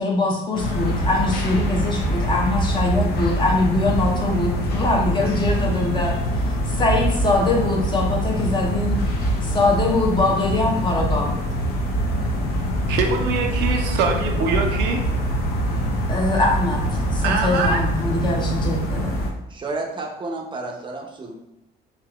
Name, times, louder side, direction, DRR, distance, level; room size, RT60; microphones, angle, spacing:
voice 1, 0.0-9.0 9.4-11.4 16.1-19.2, left 2 dB, 25° left, -1 dB, 0.7 m, -23 dB
sound 1, 0.5-19.3, equal, 65° left, 0.6 m, -24 dB
voice 2, 12.9-15.0 17.2-17.8, right 4 dB, 85° right, 3 dB, 0.6 m, -23 dB
voice 3, 19.5-21.4, right 2 dB, 30° right, 1 dB, 0.6 m, -31 dB
3.6 x 2.8 x 2.3 m, 0.92 s
cardioid pair, 110°, 17 cm